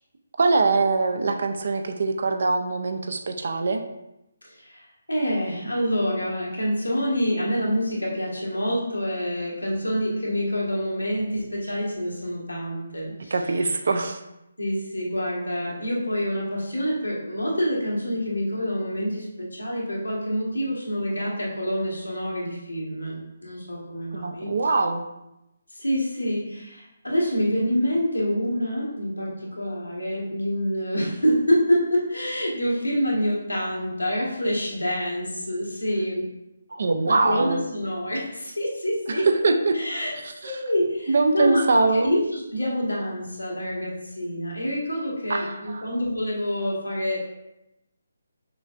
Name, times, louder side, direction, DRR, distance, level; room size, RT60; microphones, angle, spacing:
voice 1, 0.4-3.8 13.3-14.2 24.1-25.0 36.7-37.6 39.4-39.8 40.4-40.6 41.1-42.1 45.3-45.8, right 3 dB, 55° right, 5 dB, 0.5 m, -23 dB
voice 2, 4.5-4.8 5.1-13.3 13.6-13.7 14.6-24.5 25.7-36.2 37.1-39.3 39.7-40.1 40.4-41.6 41.9-47.2, equal, 85° left, -4 dB, 1.5 m, -27 dB
6.0 x 3.2 x 2.5 m, 0.90 s
figure-of-eight pair, 145°, 0 cm